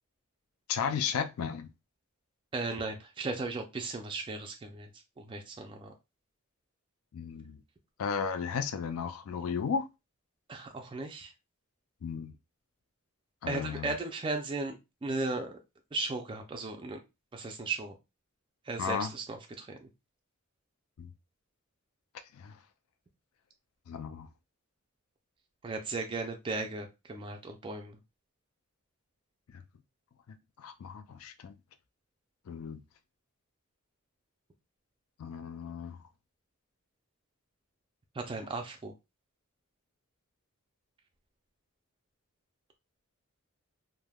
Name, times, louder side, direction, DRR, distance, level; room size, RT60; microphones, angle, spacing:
voice 1, 0.7-1.7 7.1-7.6 8.0-9.9 12.0-12.3 13.4-14.0 18.8-19.1 21.0-21.1 22.3-22.6 23.9-24.3 30.3-31.5 32.5-32.8 35.2-36.0, left 6 dB, 75° left, 0.4 m, -34 dB
voice 2, 2.5-4.9 5.2-5.9 10.5-11.3 13.5-15.6 15.9-17.0 17.3-18.0 18.7-19.9 25.6-28.0 38.1-38.9, right 3 dB, 25° right, 0.3 m, -36 dB
3.3 x 2.1 x 2.2 m
head